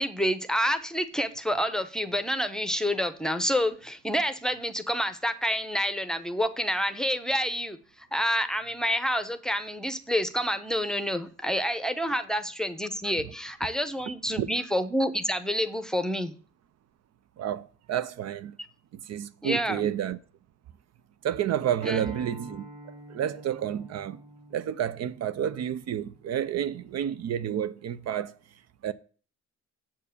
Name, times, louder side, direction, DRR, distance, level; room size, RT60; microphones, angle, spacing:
voice 1, 0.0-16.3 19.4-19.9 21.8-22.1, equal, ahead, 0.7 m, -28 dB
voice 2, 17.4-18.5 18.9-20.2 21.2-22.6 23.1-24.2 24.5-28.3 28.8-28.9, right 10 dB, 60° right, 0.5 m, -30 dB
Acoustic guitar, 21.8-27.0, equal, 20° right, 2.2 m, -48 dB
7.4 x 4.6 x 6.8 m
cardioid pair, 90°, 30 cm